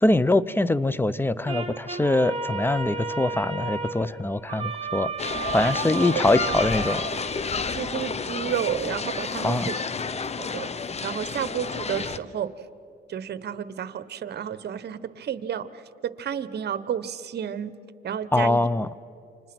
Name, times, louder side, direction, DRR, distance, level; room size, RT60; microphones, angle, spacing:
voice 1, 0.0-5.1 5.5-7.0 9.4-9.7 18.3-18.9, left 2 dB, 10° left, 18 dB, 0.7 m, -23 dB
sound 1, 1.5-7.7, right 4 dB, 30° right, 2.2 m, -33 dB
sound 2, 5.2-12.2, left 5 dB, 35° left, 1.0 m, -30 dB
voice 2, 7.7-9.8 10.4-10.7 11.0-12.5 13.1-15.7 16.2-17.7 18.0-18.6, right 9 dB, 55° right, 14 dB, 1.2 m, -31 dB
29.5 x 26.0 x 6.2 m, 2.8 s
cardioid pair, 90°, 20 cm